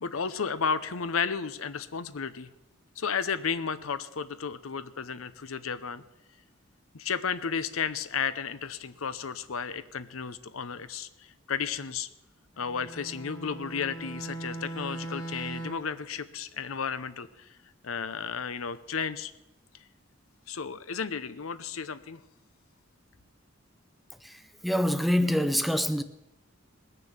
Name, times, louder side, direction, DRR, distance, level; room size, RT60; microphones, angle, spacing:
voice 1, 0.0-2.5 3.0-6.0 6.9-11.1 11.5-12.1 12.6-17.3 17.8-19.3 20.5-22.2, left 6 dB, 90° left, 0.8 m, -33 dB
Bowed string instrument, 12.6-16.0, right 2 dB, 20° left, 1.8 m, -39 dB
voice 2, 24.2-26.0, equal, ahead, 0.5 m, -26 dB
20.0 x 6.8 x 7.3 m
head